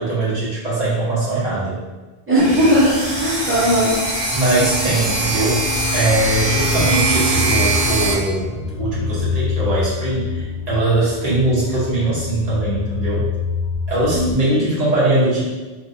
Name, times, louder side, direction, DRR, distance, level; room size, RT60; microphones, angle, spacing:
voice 1, 0.0-1.8 4.3-5.6 5.9-13.3 13.9-15.4, right 2 dB, 40° right, -9 dB, 1.1 m, -21 dB
voice 2, 2.3-3.9 14.1-14.5, equal, 15° right, -11 dB, 1.1 m, -17 dB
sound 1, 2.4-14.3, left 4 dB, 75° left, 0.8 m, -27 dB
sound 2, 2.4-8.1, right 2 dB, 75° right, 1.3 m, -22 dB
3.2 x 2.2 x 2.6 m, 1.2 s
omnidirectional pair, 1.0 m